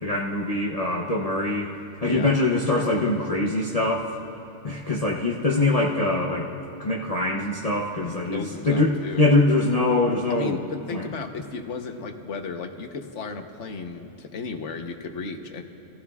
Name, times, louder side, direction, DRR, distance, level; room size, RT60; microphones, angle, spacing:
voice 1, 0.0-1.7 2.0-4.1 4.6-6.5 6.8-8.9 9.2-10.6 10.9-11.1, left 2 dB, 35° left, -3 dB, 0.9 m, -23 dB
voice 2, 2.0-2.3 8.1-9.2 10.3-15.6, left 4 dB, 80° left, 5 dB, 1.3 m, -35 dB
30.0 x 15.5 x 2.4 m, 2.7 s
omnidirectional pair, 1.2 m